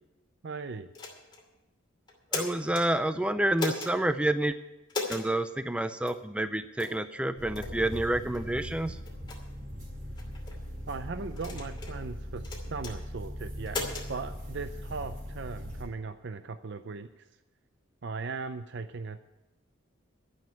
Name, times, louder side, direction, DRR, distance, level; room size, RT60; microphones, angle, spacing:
voice 1, 0.4-0.9 10.9-13.8 14.1-17.3 18.0-19.3, right 4 dB, 55° right, 10 dB, 0.5 m, -38 dB
sound 1, 0.9-1.4 2.1-2.8 3.6-3.9 4.9-5.3 6.1-6.2 6.8-7.0 7.5-7.7 8.3-8.5 9.0-9.4 10.2-10.6 11.4-12.0 12.4-12.9 13.7-14.1, left 3 dB, 20° left, 2.6 m, -36 dB
voice 2, 2.3-4.6 5.1-9.0, right 1 dB, 5° right, 11 dB, 0.4 m, -29 dB
sound 2, 7.4-15.9, equal, 40° right, 4.7 m, -40 dB
13.5 x 6.5 x 9.5 m, 0.98 s
head